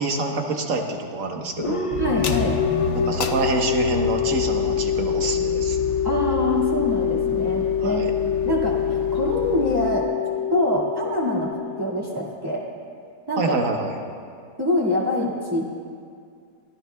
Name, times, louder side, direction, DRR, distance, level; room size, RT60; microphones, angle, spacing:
voice 1, 0.0-1.9 2.9-5.8 7.8-8.1 13.4-13.9, right 3 dB, 60° right, 3 dB, 1.5 m, -26 dB
sound 1, 1.6-12.3, left 8 dB, 30° left, 0.6 m, -25 dB
sound 2, 1.9-10.0, left 6 dB, 55° left, 1.0 m, -31 dB
voice 2, 2.0-2.6 6.0-10.1 10.5-12.6 13.3-13.6 14.6-15.7, left 1 dB, 15° right, -5 dB, 2.0 m, -25 dB
24.0 x 15.5 x 2.3 m, 2.2 s
omnidirectional pair, 1.6 m